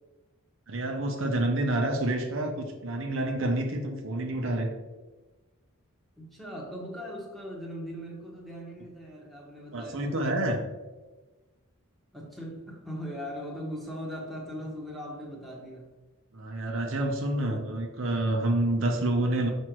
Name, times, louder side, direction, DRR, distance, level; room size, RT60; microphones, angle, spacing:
voice 1, 0.7-4.7 9.7-10.6 16.3-19.5, right 1 dB, 60° right, 3 dB, 0.7 m, -28 dB
voice 2, 6.2-10.3 12.1-15.9, equal, ahead, -3 dB, 1.2 m, -39 dB
6.0 x 5.2 x 3.0 m, 1.2 s
head